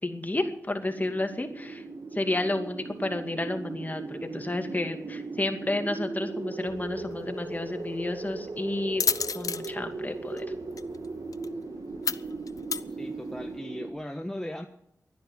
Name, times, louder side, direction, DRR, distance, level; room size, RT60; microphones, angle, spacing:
voice 1, 0.0-1.8 2.1-9.1 9.3-10.4, left 2 dB, 30° left, 6 dB, 2.5 m, -31 dB
sound 1, 0.9-13.9, right 3 dB, 75° right, 1.9 m, -38 dB
sound 2, 6.7-13.6, left 5 dB, 75° left, 0.6 m, -35 dB
voice 2, 13.0-14.7, left 1 dB, 10° left, 4 dB, 1.4 m, -37 dB
12.5 x 10.5 x 9.1 m, 0.73 s
cardioid pair, 50°, 6 cm